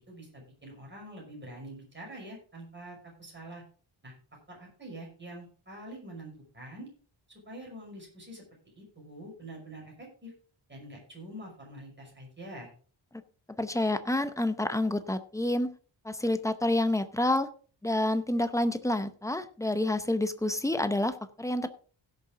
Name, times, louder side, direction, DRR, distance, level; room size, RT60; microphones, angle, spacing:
voice 1, 0.1-3.6 4.0-4.1 4.5-6.9 7.3-8.4 8.8-10.3 10.7-12.7, right 1 dB, 25° right, -1 dB, 5.5 m, -45 dB
voice 2, 13.6-15.7 16.0-17.5 17.8-21.7, left 1 dB, 5° left, 10 dB, 0.7 m, -28 dB
16.5 x 6.9 x 3.7 m, 0.41 s
wide cardioid pair, 175°, 47 cm